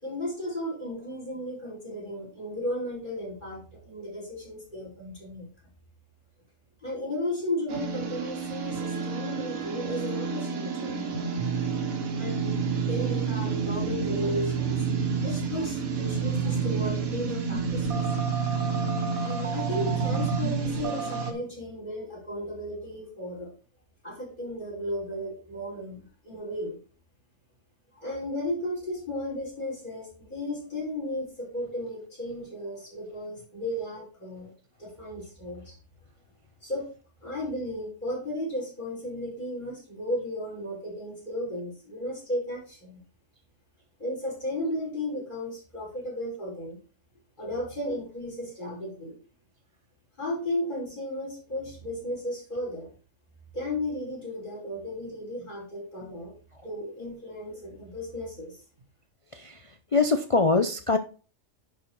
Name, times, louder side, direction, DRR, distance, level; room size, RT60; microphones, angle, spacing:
voice 1, 0.0-5.5 6.8-11.6 12.1-14.8 15.2-18.0 19.2-23.5 24.0-26.8 28.0-34.5 34.8-35.8 36.6-36.9 37.2-43.0 44.0-46.8 47.4-49.2 50.2-52.9 53.5-56.3 56.6-58.6, left 1 dB, 35° left, -4 dB, 4.8 m, -34 dB
sound 1, 7.7-21.3, right 5 dB, 75° right, 1.6 m, -29 dB
voice 2, 59.9-61.0, left 3 dB, 60° left, 7 dB, 0.3 m, -23 dB
10.5 x 4.4 x 4.6 m, 0.37 s
omnidirectional pair, 1.5 m